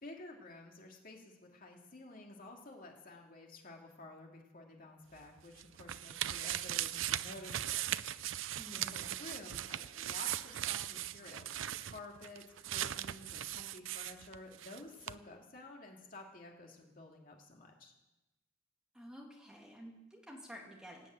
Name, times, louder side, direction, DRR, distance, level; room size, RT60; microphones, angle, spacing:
voice 1, 0.0-7.9 8.7-11.5 11.8-17.9, left 2 dB, 45° left, 1 dB, 2.4 m, -52 dB
sound 1, 5.1-14.8 15.0-15.1, right 12 dB, 85° right, 0.5 m, -39 dB
voice 2, 8.6-9.1 18.9-21.1, equal, 5° right, -1 dB, 2.4 m, -51 dB
16.0 x 9.1 x 9.0 m, 1.0 s
head